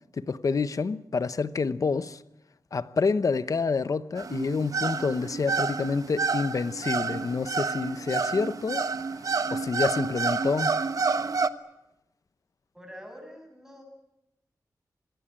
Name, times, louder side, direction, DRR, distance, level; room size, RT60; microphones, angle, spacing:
voice 1, 0.2-2.2 2.7-8.9 9.5-10.7, left 4 dB, 60° left, 0.9 m, -28 dB
sound 1, 4.2-11.5, right 4 dB, 60° right, 1.1 m, -29 dB
voice 2, 12.7-13.8, equal, 5° right, 7.2 m, -45 dB
26.0 x 20.5 x 8.9 m
wide cardioid pair, 125°, 7 cm